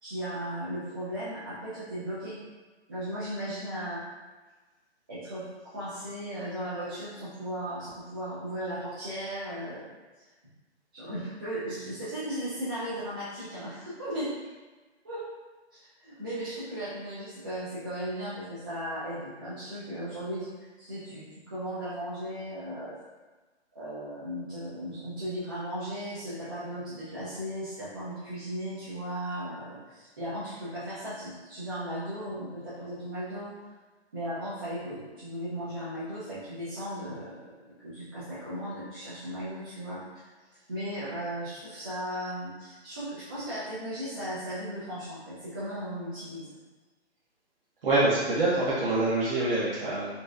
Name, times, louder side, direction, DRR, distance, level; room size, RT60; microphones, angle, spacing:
voice 1, 0.0-2.4 2.9-4.0 5.1-9.9 10.9-14.3 15.0-15.2 16.0-20.5 20.8-22.9 23.7-33.5 34.1-40.3 40.7-46.4, equal, 20° right, -13 dB, 0.4 m, -36 dB
voice 2, 47.8-50.1, right 2 dB, 55° right, -9 dB, 0.8 m, -25 dB
4.1 x 2.0 x 2.3 m, 1.3 s
hypercardioid pair, 155°, 34 cm